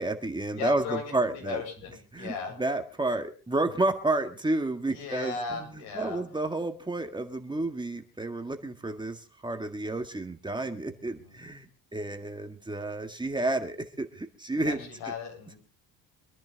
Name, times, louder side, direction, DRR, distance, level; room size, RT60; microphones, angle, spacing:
voice 1, 0.0-1.6 2.1-5.7 5.9-15.1, right 2 dB, 10° right, 6 dB, 1.7 m, -31 dB
voice 2, 0.5-2.5 4.8-6.2 11.2-11.3 14.5-15.6, left 5 dB, 85° left, 2 dB, 8.0 m, -37 dB
25.5 x 10.5 x 4.0 m, 0.35 s
cardioid pair, 115°, 38 cm